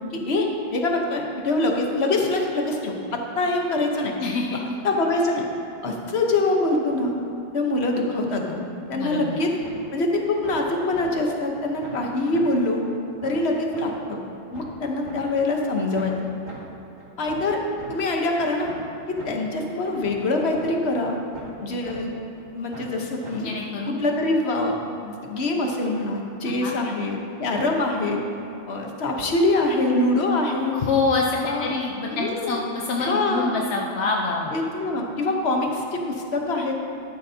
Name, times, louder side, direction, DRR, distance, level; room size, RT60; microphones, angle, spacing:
voice 1, 0.3-4.1 4.8-5.4 5.8-7.1 7.5-8.6 8.9-9.5 9.9-12.8 13.2-14.2 14.5-16.1 17.2-17.6 17.9-18.7 19.1-21.2 21.6-22.1 22.5-23.5 23.9-24.8 25.0-28.2 28.7-30.8 31.3-31.7 32.1-32.6 33.0-33.5 34.5-36.8, left 2 dB, 40° left, 1 dB, 1.1 m, -24 dB
voice 2, 4.2-4.6 8.9-9.4 23.4-24.0 26.5-26.7 30.7-34.6, left 3 dB, 60° left, -1 dB, 0.7 m, -26 dB
sound 1, 9.6-9.7 10.1-10.5 10.9-11.0 11.5-11.6 11.8-12.0 12.3-12.4 12.8-12.9 13.2-13.3 13.7-13.8 14.2-15.2 15.6-15.7 15.9-16.1 16.5-16.6 17.0-17.9 18.3-18.4 18.6-18.8 19.2-19.3 19.7-19.8 20.0-20.2 20.5-20.6 21.0-21.6 21.8-22.0 22.4-22.5 22.7-22.9 23.2-23.3 23.7-23.8, right 2 dB, 25° right, 1.9 m, -41 dB
12.5 x 11.0 x 2.8 m, 2.7 s
omnidirectional pair, 2.0 m